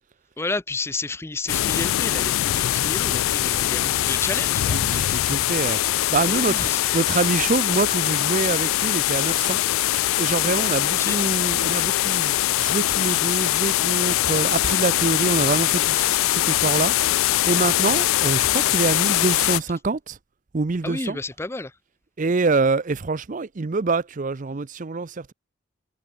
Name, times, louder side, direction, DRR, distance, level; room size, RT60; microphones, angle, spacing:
voice 1, 0.4-4.8 6.3-7.0 11.0-11.2 20.8-21.7, left 3 dB, 10° left, 0.5 m, -31 dB
sound 1, 1.5-19.6, left 14 dB, 75° left, 0.3 m, -22 dB
voice 2, 4.7-9.6 10.2-16.9 17.5-20.2 20.5-21.2 22.2-25.3, right 3 dB, 40° right, 0.5 m, -25 dB
head